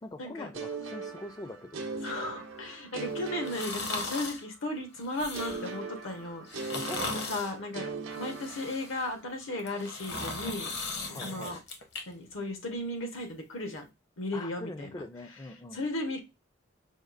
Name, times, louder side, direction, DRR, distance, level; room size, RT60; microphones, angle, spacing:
voice 1, 0.0-1.8 6.7-7.3 11.1-11.6 14.3-15.8, left 2 dB, 20° left, 0.3 m, -43 dB
sound 1, 0.5-4.5 5.3-9.2, right 4 dB, 80° right, 0.7 m, -40 dB
voice 2, 2.0-6.4 7.0-7.9 8.2-10.7 11.1-11.6 12.1-13.9 14.2-14.9 15.7-16.2, left 1 dB, 75° left, 1.1 m, -35 dB
sound 2, 3.4-4.4 5.0-5.8 6.5-7.5 8.1-9.1 9.6-12.0 12.4-12.5, left 3 dB, 55° left, 0.9 m, -38 dB
5.0 x 2.3 x 2.4 m
head